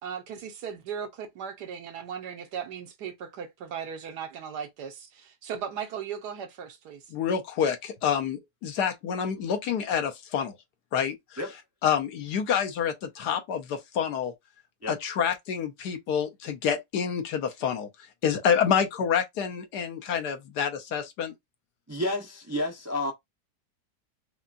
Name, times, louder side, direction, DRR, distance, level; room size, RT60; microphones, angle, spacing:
voice 1, 0.0-7.0, right 7 dB, 80° right, 1.4 m, -37 dB
voice 2, 7.1-10.6 10.9-11.2 11.8-14.3 14.9-17.9 18.2-21.3, left 7 dB, 75° left, 1.4 m, -27 dB
voice 3, 21.9-23.1, left 1 dB, 25° right, 0.3 m, -30 dB
5.5 x 2.3 x 2.5 m
omnidirectional pair, 1.8 m